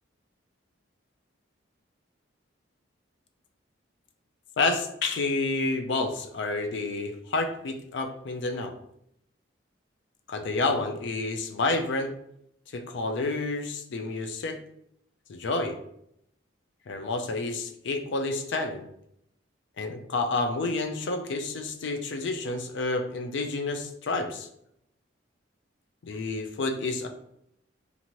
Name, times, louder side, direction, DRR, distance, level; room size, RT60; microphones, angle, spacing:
voice 1, 4.6-8.7 10.3-12.1 12.7-14.6 15.3-15.8 16.9-18.9 19.8-24.5 26.1-27.1, left 3 dB, 65° left, 6 dB, 0.4 m, -29 dB
2.8 x 2.5 x 2.9 m, 0.75 s
head